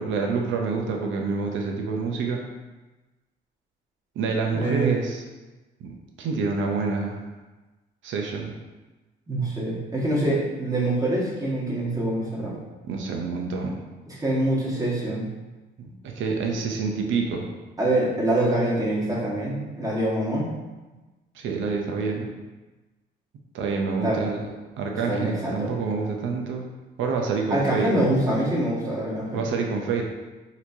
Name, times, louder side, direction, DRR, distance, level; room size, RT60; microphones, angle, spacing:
voice 1, 0.0-2.4 4.2-5.2 5.8-7.2 8.0-8.5 12.9-13.8 16.2-17.5 21.4-22.3 23.5-24.5 24.8-26.6 27.0-27.9 29.3-30.0, right 4 dB, 75° right, 1 dB, 0.7 m, -27 dB
voice 2, 4.5-4.9 9.3-12.5 14.1-15.2 17.8-20.5 24.0-24.2 25.1-25.7 27.5-29.4, right 1 dB, 15° right, -6 dB, 1.4 m, -25 dB
4.2 x 3.0 x 2.7 m, 1.2 s
cardioid pair, 90°, 20 cm